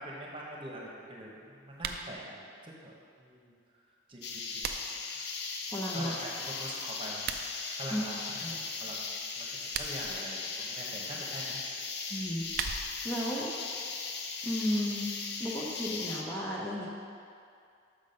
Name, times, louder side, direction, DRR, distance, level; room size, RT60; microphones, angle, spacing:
voice 1, 0.0-3.8 4.1-4.7 5.1-5.2 5.9-7.2 7.8-9.0 9.4-11.6, right 1 dB, 25° right, -3 dB, 1.1 m, -44 dB
sound 1, 1.7-2.1 4.1-5.1 7.1-7.5 9.5-10.1 12.1-13.1, right 6 dB, 50° right, 0.4 m, -38 dB
sound 2, 4.2-16.2, left 4 dB, 55° left, 0.6 m, -38 dB
voice 2, 5.7-6.2 7.9-8.0 8.4-8.7 12.1-12.5 13.0-13.5 14.4-15.1 15.4-16.9, equal, 10° left, -6 dB, 0.6 m, -33 dB
6.3 x 6.1 x 5.3 m, 2.4 s
head